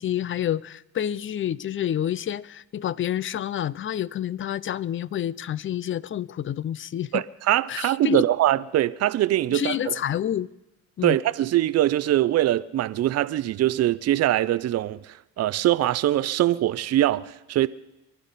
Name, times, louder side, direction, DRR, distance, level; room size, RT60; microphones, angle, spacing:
voice 1, 0.0-7.2 7.7-8.3 9.5-10.5 11.0-11.2, left 11 dB, 40° left, 0.4 m, -28 dB
voice 2, 7.1-10.0 11.0-17.7, right 14 dB, 55° right, 0.5 m, -23 dB
23.5 x 12.0 x 4.1 m
cardioid pair, 90°, 30 cm